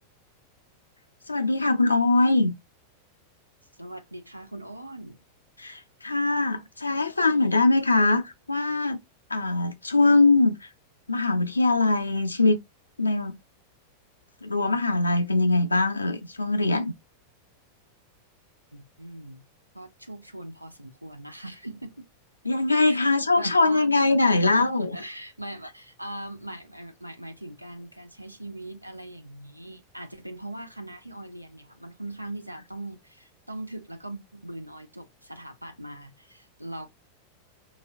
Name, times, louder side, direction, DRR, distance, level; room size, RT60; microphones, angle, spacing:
voice 1, 1.3-2.5 5.6-9.0 9.3-10.7 11.1-12.6 13.0-13.4 14.4-16.9 22.5-24.9, left 2 dB, 80° left, 0.4 m, -22 dB
voice 2, 3.7-5.2 7.2-7.7 18.7-19.4 19.7-22.1 22.8-23.0 23.3-36.9, right 1 dB, 90° right, 0.5 m, -40 dB
4.0 x 2.9 x 2.5 m
figure-of-eight pair, 90°, 0 cm